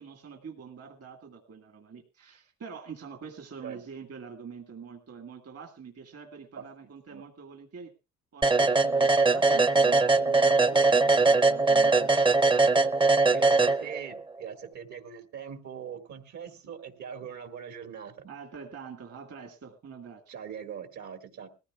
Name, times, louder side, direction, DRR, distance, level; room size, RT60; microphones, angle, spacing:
voice 1, 0.0-7.9 8.3-12.7 18.2-20.4, right 6 dB, 55° right, 4 dB, 1.7 m, -45 dB
sound 1, 8.4-14.2, right 3 dB, 15° right, 0.6 m, -21 dB
voice 2, 13.3-18.3 20.3-21.5, right 8 dB, 70° right, 6 dB, 2.1 m, -41 dB
20.5 x 14.5 x 2.4 m, 0.30 s
cardioid pair, 90°, 30 cm